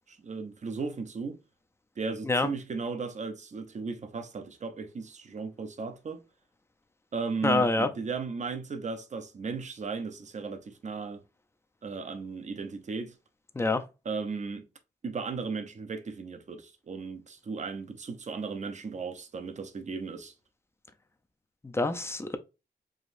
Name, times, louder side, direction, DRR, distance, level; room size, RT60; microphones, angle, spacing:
voice 1, 0.1-1.4 2.0-6.2 7.1-11.2 11.8-13.2 14.0-14.7 15.0-20.3, right 4 dB, 45° right, 0.8 m, -36 dB
voice 2, 7.4-7.9 13.5-13.8 21.6-22.4, left 2 dB, 15° left, 0.6 m, -26 dB
4.9 x 3.0 x 2.6 m
wide cardioid pair, 120°, 17 cm